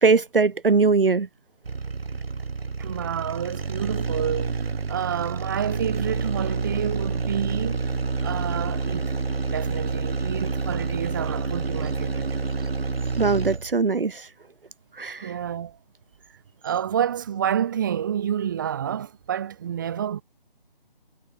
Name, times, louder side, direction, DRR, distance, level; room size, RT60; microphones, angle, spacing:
voice 1, 0.0-1.3 13.2-14.3 15.0-15.3, right 4 dB, 65° right, 1.1 m, -20 dB
sound 1, 1.6-13.8, right 4 dB, 85° right, 0.8 m, -28 dB
voice 2, 2.8-8.0 8.2-9.1 9.5-12.4 15.2-15.8 16.6-20.2, right 9 dB, 20° right, 1.2 m, -29 dB
figure-of-eight pair, 155°, 29 cm